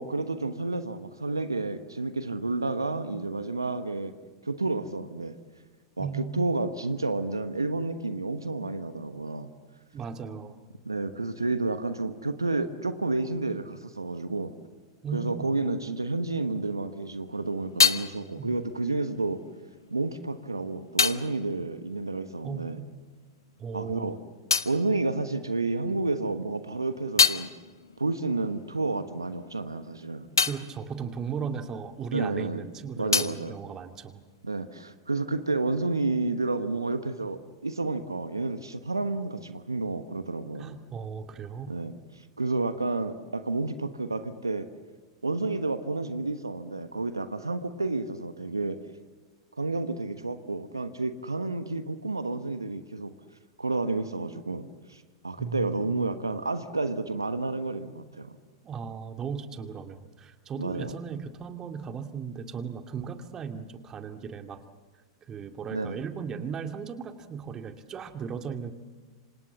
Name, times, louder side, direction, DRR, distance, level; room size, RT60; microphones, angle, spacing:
voice 1, 0.0-4.1 4.4-5.4 6.0-9.5 10.8-14.5 15.1-19.4 19.9-22.8 23.7-24.2 24.6-27.5 28.0-30.3 32.1-32.6 33.0-33.6 34.4-40.8 41.7-44.7 45.2-48.8 49.6-53.1 53.6-58.4 60.6-60.9 65.7-66.0, right 3 dB, 90° right, 10 dB, 1.3 m, -30 dB
voice 2, 6.0-6.5 9.9-10.6 15.0-15.5 18.4-18.6 22.4-22.9 23.6-24.2 30.5-34.2 40.6-41.7 55.4-56.2 58.6-64.6 65.3-68.7, right 6 dB, 25° right, 7 dB, 2.2 m, -37 dB
sound 1, 17.0-23.0 23.2-25.9 26.3-32.4 32.6-34.7, left 5 dB, 85° left, 0.9 m, -31 dB
27.5 x 26.0 x 7.4 m, 1.4 s
figure-of-eight pair, 95°, 2 cm